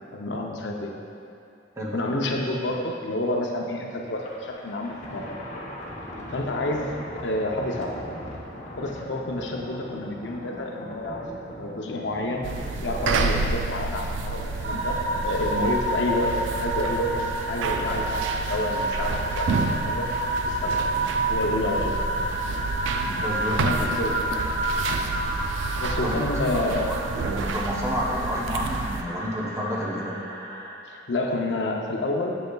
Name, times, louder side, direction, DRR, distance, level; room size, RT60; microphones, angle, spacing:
voice 1, 0.1-0.9 1.9-5.3 6.3-7.0 7.2-8.0 8.8-11.2 11.5-12.5 12.8-15.0 15.2-20.1 20.4-20.8 21.3-22.0 23.5-24.5 25.8-26.9 30.9-32.3, left 1 dB, 70° left, 1 dB, 0.7 m, -29 dB
Thunder, 4.1-15.8, left 1 dB, 40° left, 0.8 m, -40 dB
sound 1, 12.4-29.0, right 3 dB, 90° right, 0.4 m, -30 dB
sound 2, 14.6-30.7, right 1 dB, 60° right, 1.0 m, -29 dB
voice 2, 23.0-23.8 26.0-26.2 26.7-30.1, equal, 15° right, -4 dB, 0.8 m, -30 dB
7.8 x 6.6 x 2.3 m, 2.7 s
head